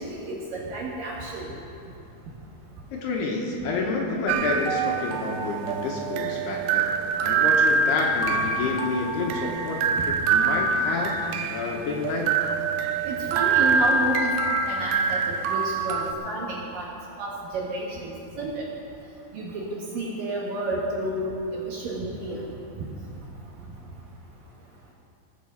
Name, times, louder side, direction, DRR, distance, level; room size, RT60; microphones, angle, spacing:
voice 1, 0.0-1.5 10.0-10.1 13.0-16.9 17.2-18.7 19.3-22.4, right 2 dB, 65° right, -4 dB, 2.3 m, -31 dB
voice 2, 2.9-6.9 7.2-9.8 10.1-11.2 11.5-12.3, left 3 dB, 70° left, 0 dB, 2.9 m, -29 dB
sound 1, 4.3-16.1, right 4 dB, 90° right, 2.4 m, -25 dB
18.0 x 6.1 x 7.1 m, 2.7 s
omnidirectional pair, 5.3 m